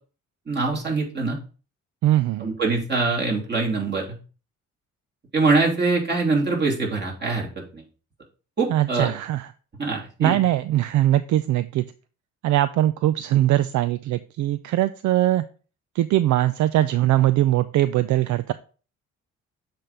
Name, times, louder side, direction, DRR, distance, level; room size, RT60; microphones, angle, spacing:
voice 1, 0.5-1.4 2.4-4.0 5.3-7.5 7.7-7.8 8.6-9.1 9.8-10.4, right 3 dB, 35° right, -2 dB, 3.0 m, -23 dB
voice 2, 2.0-2.5 8.7-9.5 10.2-11.8 12.4-15.4 16.0-18.5, right 14 dB, 70° right, 13 dB, 0.5 m, -21 dB
7.4 x 3.6 x 5.4 m, 0.37 s
cardioid pair, 90°, 30 cm